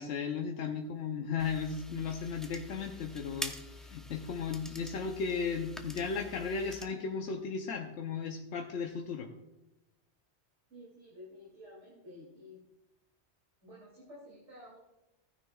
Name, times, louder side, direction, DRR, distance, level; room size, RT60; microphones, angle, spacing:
voice 1, 0.0-9.3, left 5 dB, 90° left, 3 dB, 1.1 m, -35 dB
sound 1, 1.4-6.9, left 1 dB, ahead, 0.6 m, -46 dB
voice 2, 10.7-12.6 13.6-14.8, left 1 dB, 90° right, -5 dB, 3.0 m, -52 dB
14.5 x 9.9 x 2.3 m, 0.99 s
omnidirectional pair, 1.2 m